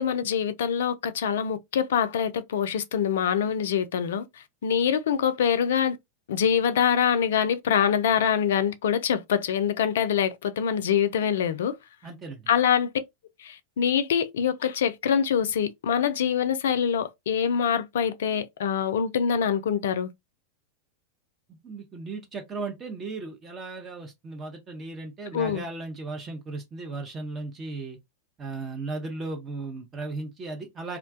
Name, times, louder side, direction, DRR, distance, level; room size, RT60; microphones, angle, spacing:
voice 1, 0.0-4.3 4.6-6.0 6.3-11.7 12.5-12.9 13.4-20.1 25.3-25.6, left 8 dB, 60° left, 0.3 m, -24 dB
voice 2, 12.0-12.5 21.5-28.0 28.4-31.0, right 3 dB, 25° right, 0.6 m, -36 dB
2.3 x 2.2 x 2.4 m
figure-of-eight pair, 90°, 0 cm